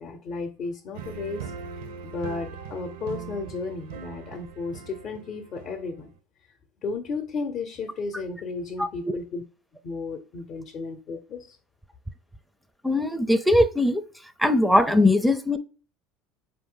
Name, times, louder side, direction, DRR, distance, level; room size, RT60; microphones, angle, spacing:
voice 1, 0.0-1.5 2.0-6.1 6.8-9.4 9.8-11.6, left 4 dB, 50° left, 0.7 m, -34 dB
sound 1, 0.9-6.2, right 7 dB, 80° right, 0.6 m, -40 dB
voice 2, 12.8-14.0 14.4-15.6, left 1 dB, ahead, 0.5 m, -20 dB
4.4 x 2.6 x 3.7 m
hypercardioid pair, 85°, 0 cm